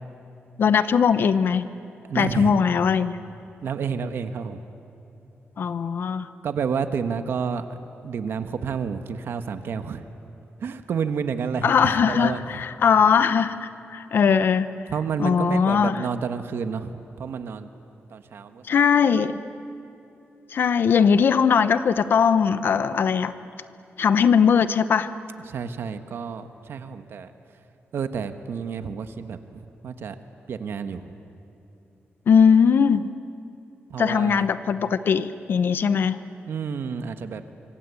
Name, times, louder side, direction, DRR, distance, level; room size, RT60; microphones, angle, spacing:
voice 1, 0.6-1.7 2.1-3.2 5.6-6.3 11.6-14.7 15.2-16.0 18.7-19.4 20.5-23.4 24.0-25.1 32.3-33.1 34.0-36.2, left 6 dB, 55° left, 13 dB, 0.8 m, -20 dB
voice 2, 2.1-2.6 3.6-4.6 6.4-7.7 8.0-10.1 10.6-12.6 14.9-17.7 18.1-18.9 25.5-27.3 27.9-30.1 30.5-31.1 33.9-34.4 36.5-37.4, right 6 dB, 65° right, 9 dB, 1.2 m, -30 dB
25.5 x 25.0 x 8.4 m, 2.9 s
wide cardioid pair, 165°, 4 cm